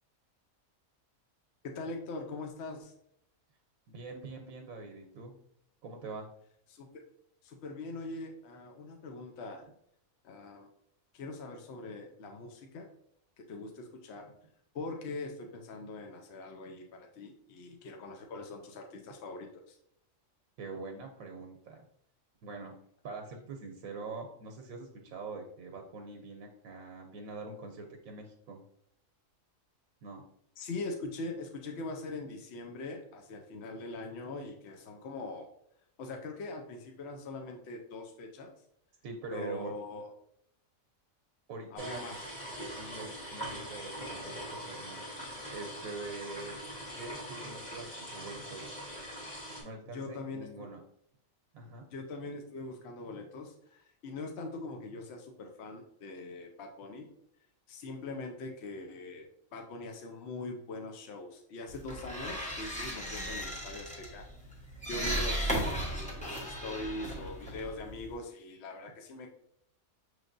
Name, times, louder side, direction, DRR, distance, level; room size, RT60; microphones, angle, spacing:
voice 1, 1.7-2.9 6.7-6.9 7.4-9.7 10.2-10.7 11.1-12.9 13.4-14.3 14.7-19.8 30.6-35.5 36.0-38.5 39.3-40.1 41.7-42.2 49.9-50.7 51.9-57.1 57.7-64.3 64.9-69.3, left 2 dB, 60° left, 2 dB, 0.8 m, -42 dB
voice 2, 3.9-5.3 5.8-6.3 20.6-21.8 22.4-22.7 23.0-28.6 30.0-30.2 39.0-39.7 41.5-42.0 42.7-45.0 45.5-46.6 46.9-48.7 49.6-50.8 51.5-51.8 53.1-53.2, right 3 dB, 85° right, 3 dB, 1.0 m, -44 dB
sound 1, 41.8-49.6, equal, 30° left, 1.6 m, -42 dB
sound 2, 61.7-68.2, equal, 5° left, 0.6 m, -36 dB
6.4 x 3.2 x 2.5 m, 0.72 s
omnidirectional pair, 1.4 m